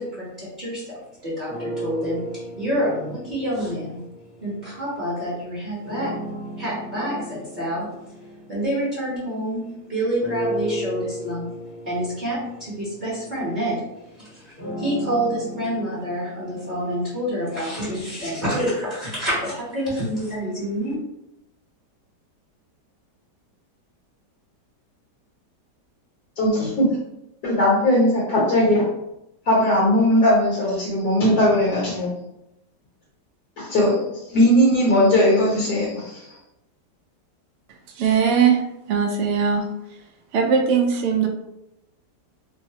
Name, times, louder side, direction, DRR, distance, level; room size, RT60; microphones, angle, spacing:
voice 1, 0.0-4.0 4.4-6.1 6.6-7.9 8.5-9.6 9.9-11.5 11.8-13.8 14.1-21.0, equal, 35° right, -9 dB, 0.9 m, -27 dB
sound 1, 1.5-5.0 5.8-9.6 10.2-18.2, right 1 dB, 40° left, 0.8 m, -35 dB
voice 2, 26.4-26.9 27.4-28.9 29.5-32.1 33.6-34.0 34.3-36.3, left 1 dB, 65° left, -5 dB, 1.2 m, -18 dB
voice 3, 37.9-39.7 40.3-41.3, right 6 dB, 85° right, 3 dB, 0.6 m, -20 dB
3.1 x 2.1 x 2.7 m, 0.87 s
omnidirectional pair, 1.8 m